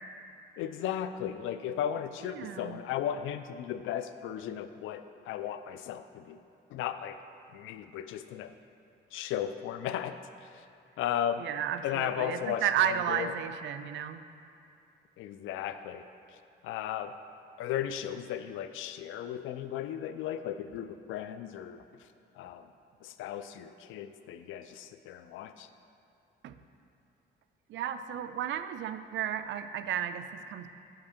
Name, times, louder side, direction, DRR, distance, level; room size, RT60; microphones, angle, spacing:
voice 1, 0.6-6.4 6.7-7.2 7.5-8.6 9.1-10.7 11.0-11.5 11.8-13.4 15.2-17.2 17.6-22.1 22.3-22.7 23.0-25.7, left 10 dB, 85° left, 11 dB, 0.4 m, -36 dB
voice 2, 2.3-2.8 11.4-14.3 26.4-26.6 27.7-30.7, right 10 dB, 70° right, 10 dB, 0.4 m, -33 dB
5.8 x 5.2 x 6.6 m, 2.6 s
cardioid pair, 90°, 20 cm